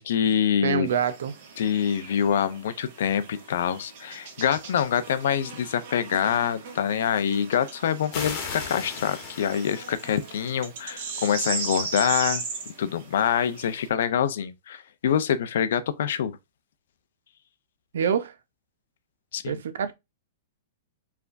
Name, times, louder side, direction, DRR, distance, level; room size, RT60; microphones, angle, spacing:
voice 1, 0.0-0.9 1.6-12.4 12.8-16.3 19.3-19.6, left 8 dB, 60° left, 0.6 m, -25 dB
voice 2, 0.6-1.3 17.9-18.3 19.4-19.9, right 8 dB, 80° right, 0.7 m, -26 dB
sound 1, 0.9-13.9, right 5 dB, 45° right, 1.6 m, -38 dB
sound 2, 8.1-10.7, left 5 dB, 25° left, 1.2 m, -37 dB
4.6 x 3.4 x 2.5 m
supercardioid pair, 175°, 0 cm